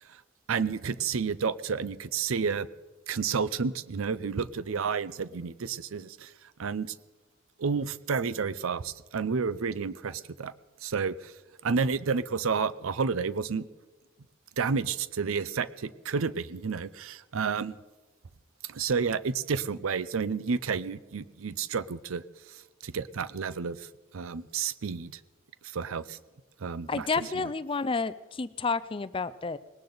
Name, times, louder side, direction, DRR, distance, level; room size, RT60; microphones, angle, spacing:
voice 1, 0.5-2.7 3.1-6.3 6.6-7.0 7.6-10.5 10.8-11.3 11.6-13.7 14.6-17.8 18.7-22.2 22.5-23.9 24.1-25.2 25.6-26.2 26.6-27.3, right 5 dB, 80° right, 17 dB, 0.6 m, -30 dB
voice 2, 26.9-29.6, left 4 dB, 25° left, 15 dB, 0.4 m, -30 dB
19.5 x 18.5 x 4.0 m, 1.2 s
head